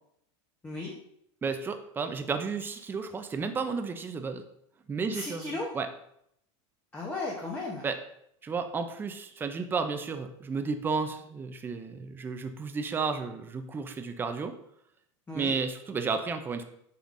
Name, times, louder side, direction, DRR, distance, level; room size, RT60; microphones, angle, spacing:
voice 1, 0.6-0.9 5.1-5.7 6.9-7.9 15.3-15.6, left 2 dB, 10° left, -3 dB, 0.8 m, -35 dB
voice 2, 1.4-4.4 4.9-5.9 7.8-8.0 8.4-14.6 15.3-16.6, right 5 dB, 15° right, 8 dB, 0.4 m, -32 dB
7.0 x 5.6 x 2.5 m, 0.73 s
supercardioid pair, 150°, 16 cm